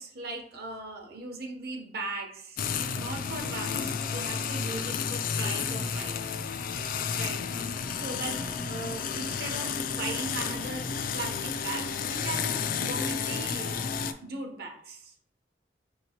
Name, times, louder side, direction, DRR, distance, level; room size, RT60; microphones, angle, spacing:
voice 1, 0.0-2.7 2.9-6.3 7.1-7.4 7.9-13.8 14.2-15.1, right 3 dB, 55° right, 2 dB, 0.8 m, -39 dB
sound 1, 2.6-14.1, left 6 dB, 50° left, 0.3 m, -31 dB
5.6 x 2.9 x 2.8 m, 0.64 s
head